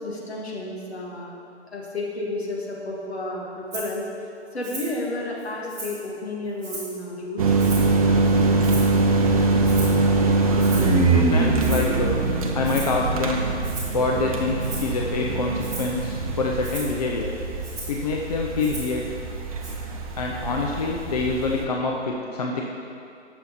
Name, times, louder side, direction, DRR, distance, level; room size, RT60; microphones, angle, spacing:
voice 1, 0.0-1.3 1.7-4.1 4.5-7.5, left 2 dB, 60° left, -3 dB, 2.1 m, -31 dB
Rattle (instrument), 3.7-3.9 4.6-5.0 5.4-6.1 6.6-7.0 7.6-8.0 8.6-9.1 9.6-10.0 10.6-11.0 11.6-12.0 12.6-13.0 13.6-14.0 14.6-14.9 15.6-16.0 16.6-16.9 17.6-18.0 18.6-19.0 19.6-19.7, right 2 dB, 10° right, 1.9 m, -37 dB
sound 1, 7.4-21.6, right 3 dB, 30° right, 0.7 m, -23 dB
voice 2, 11.1-12.2 12.5-13.4 13.9-17.3 17.9-19.2 20.1-22.6, left 3 dB, 35° left, -1 dB, 0.6 m, -26 dB
10.0 x 6.9 x 4.2 m, 2.5 s
figure-of-eight pair, 135°, 35 cm